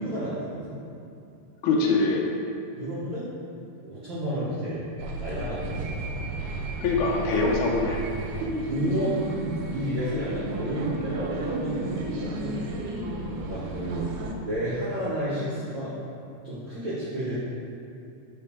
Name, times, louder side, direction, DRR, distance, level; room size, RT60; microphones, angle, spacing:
voice 1, 0.0-0.7 2.8-3.3 3.8-4.9 5.2-6.1 8.3-9.3 9.7-12.6 13.3-14.1 14.4-15.9 16.4-17.3, equal, 60° right, -9 dB, 1.3 m, -31 dB
voice 2, 1.6-2.2 6.8-8.2, left 3 dB, 80° left, -2 dB, 2.2 m, -24 dB
sound 1, 5.0-14.3, right 2 dB, 80° right, 1.9 m, -33 dB
6.7 x 4.8 x 3.6 m, 2.7 s
omnidirectional pair, 3.6 m